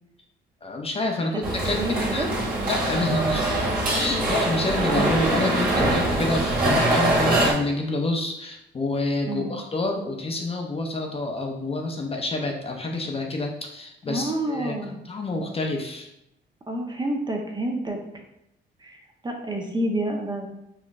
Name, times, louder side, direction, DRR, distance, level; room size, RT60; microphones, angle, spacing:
voice 1, 0.6-1.8 2.1-2.3 2.7-3.6 3.9-14.7 15.1-16.1, left 2 dB, 30° left, 2 dB, 0.5 m, -28 dB
voice 2, 1.3-2.3 9.3-9.6 14.1-15.0 16.7-18.0 18.8-20.5, right 1 dB, 20° right, 2 dB, 0.6 m, -29 dB
sound 1, 1.4-7.5, right 1 dB, 45° right, 1.5 m, -23 dB
4.1 x 3.0 x 2.4 m, 0.83 s
cardioid pair, 90°, 20 cm